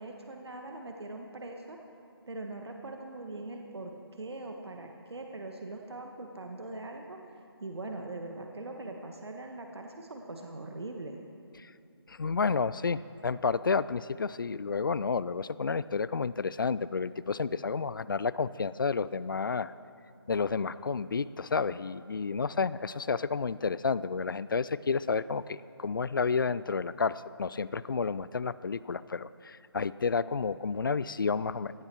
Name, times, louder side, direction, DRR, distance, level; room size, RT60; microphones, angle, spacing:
voice 1, 0.0-1.8 2.3-7.2 7.6-11.2, right 2 dB, 75° right, 3 dB, 1.5 m, -41 dB
voice 2, 12.1-19.7 20.3-31.7, left 5 dB, 55° left, 17 dB, 0.4 m, -31 dB
17.0 x 11.5 x 4.5 m, 2.5 s
figure-of-eight pair, 170°, 14 cm